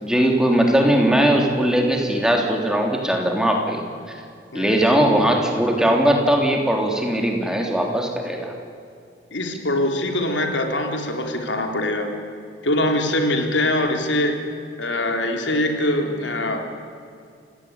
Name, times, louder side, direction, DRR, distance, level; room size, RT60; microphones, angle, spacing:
voice 1, 0.0-4.1 4.5-8.5, right 1 dB, 5° right, 1 dB, 3.4 m, -19 dB
voice 2, 9.3-12.1 12.6-14.5 14.8-16.7, left 1 dB, 85° left, 4 dB, 3.4 m, -23 dB
29.0 x 17.5 x 9.7 m, 2.4 s
head